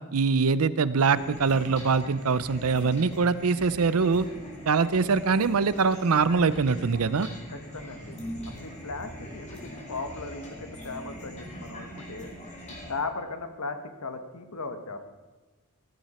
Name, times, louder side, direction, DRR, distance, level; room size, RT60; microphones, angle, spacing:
voice 1, 0.1-4.2 4.7-7.3, right 5 dB, 70° right, 16 dB, 0.6 m, -23 dB
sound 1, 1.1-12.9, equal, 30° left, 2.8 m, -42 dB
voice 2, 7.5-8.2 8.6-12.3 12.9-15.0, left 3 dB, 80° left, 7 dB, 1.4 m, -37 dB
15.0 x 13.0 x 4.3 m, 1.2 s
head